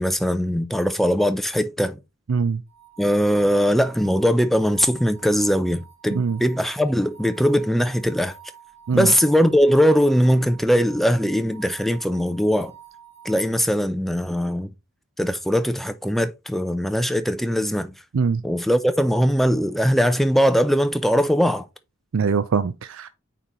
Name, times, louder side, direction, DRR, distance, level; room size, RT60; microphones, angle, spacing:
voice 1, 0.0-2.0 3.0-8.3 8.9-12.7 13.2-14.7 15.2-17.9 18.4-21.7, equal, ahead, 0.4 m, -20 dB
voice 2, 2.3-2.6 6.1-6.4 8.9-9.1 18.1-18.4 22.1-23.1, right 5 dB, 75° right, 0.4 m, -22 dB
sound 1, 2.7-13.5, right 9 dB, 30° left, 1.4 m, -48 dB
8.9 x 4.2 x 3.0 m
head